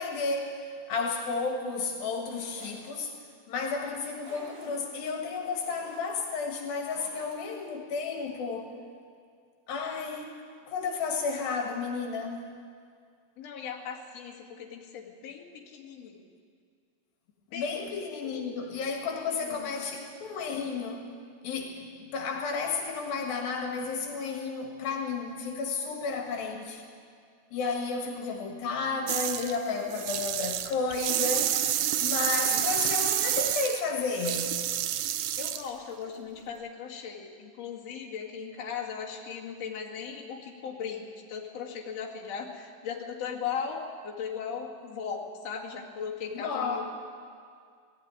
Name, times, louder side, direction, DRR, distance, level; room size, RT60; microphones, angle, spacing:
voice 1, 0.0-3.2 3.5-8.7 9.7-10.3 10.7-12.5 17.5-21.1 21.4-26.8 27.5-31.6 32.0-34.5 46.3-46.8, left 4 dB, 75° left, 2 dB, 3.3 m, -32 dB
sound 1, 2.1-2.9 3.9-4.9 5.3-6.1 6.6-7.7, right 1 dB, 40° right, 4.4 m, -50 dB
voice 2, 13.4-16.2 17.5-17.9 18.2-18.7 19.4-19.7 32.5-32.6 35.1-46.8, left 6 dB, 50° left, -3 dB, 3.1 m, -38 dB
sound 2, 29.1-29.5 29.9-35.7, right 11 dB, 80° right, 1.7 m, -29 dB
19.0 x 14.5 x 9.6 m, 2.2 s
omnidirectional pair, 4.2 m